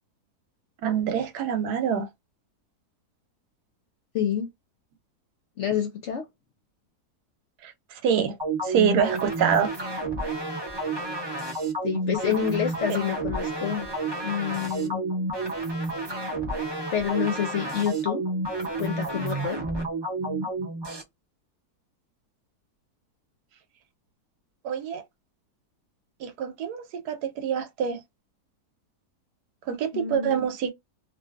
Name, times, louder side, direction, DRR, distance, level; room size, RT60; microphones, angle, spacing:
voice 1, 0.8-2.1 7.6-8.4 8.6-9.7 12.9-13.0 24.6-25.0 26.2-28.0 29.7-30.7, right 8 dB, 80° right, 1.2 m, -26 dB
voice 2, 4.1-4.5 5.6-6.3 11.8-13.9 14.2-15.0 16.9-18.2 18.8-19.6 29.9-30.4, left 8 dB, 65° left, 0.7 m, -28 dB
sound 1, 8.4-21.0, right 2 dB, 40° right, 0.3 m, -30 dB
2.7 x 2.4 x 2.3 m
omnidirectional pair, 1.7 m